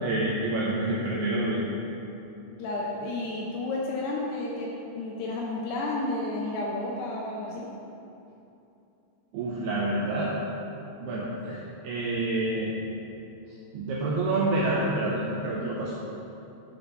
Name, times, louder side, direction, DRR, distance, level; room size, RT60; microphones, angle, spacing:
voice 1, 0.0-1.7 9.3-10.3 11.0-12.7 13.7-15.9, right 2 dB, 80° right, -5 dB, 2.4 m, -28 dB
voice 2, 2.6-7.7, left 2 dB, 80° left, -3 dB, 2.5 m, -31 dB
12.0 x 4.5 x 5.0 m, 2.8 s
omnidirectional pair, 5.4 m